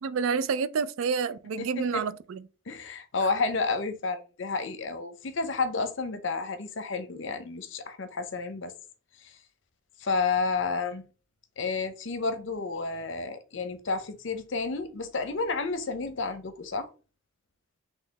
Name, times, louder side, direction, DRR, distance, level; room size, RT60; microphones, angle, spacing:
voice 1, 0.0-2.4, right 5 dB, 80° right, 0.4 m, -29 dB
voice 2, 1.6-2.0 2.7-8.7 9.2-9.3 10.0-11.0 11.6-16.9, left 4 dB, 65° left, 0.7 m, -31 dB
3.9 x 3.0 x 4.0 m
head